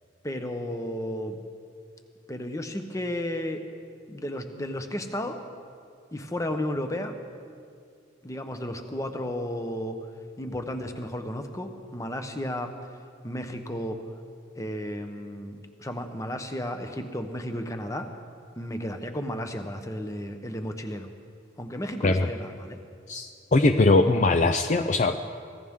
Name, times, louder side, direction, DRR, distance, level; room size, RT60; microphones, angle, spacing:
voice 1, 0.2-1.4 2.3-3.6 4.1-5.4 6.1-7.2 8.2-10.1 10.4-13.0 13.2-14.0 14.6-18.1 18.6-21.1 21.6-22.8, left 1 dB, 15° left, 6 dB, 0.9 m, -33 dB
voice 2, 23.1-25.3, left 2 dB, 40° left, 7 dB, 0.5 m, -21 dB
24.5 x 16.0 x 3.7 m, 2.3 s
head